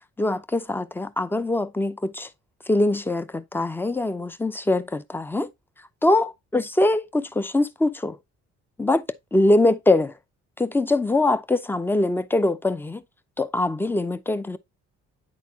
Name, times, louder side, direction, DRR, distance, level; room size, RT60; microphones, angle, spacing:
voice 1, 0.2-2.3 2.7-5.5 6.0-8.2 8.8-9.1 9.3-10.1 10.6-13.0 13.4-14.6, left 2 dB, 5° left, 0.6 m, -23 dB
9.5 x 4.1 x 2.7 m
cardioid pair, 90°, 30 cm